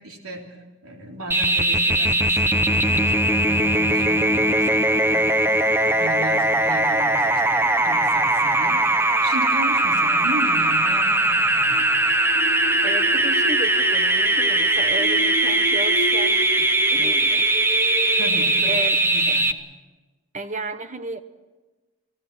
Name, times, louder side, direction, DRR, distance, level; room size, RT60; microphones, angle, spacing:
voice 1, 0.0-8.8 9.2-11.9 18.2-19.5, right 1 dB, 90° right, 2 dB, 3.6 m, -35 dB
sound 1, 1.3-19.5, right 1 dB, 10° right, 0.7 m, -20 dB
sound 2, 10.5-18.7, equal, 45° left, 2.4 m, -34 dB
voice 2, 12.8-17.4 18.7-19.0 19.3-19.4 20.3-21.2, right 2 dB, 35° right, 10 dB, 1.1 m, -33 dB
28.5 x 18.0 x 6.2 m, 1.2 s
head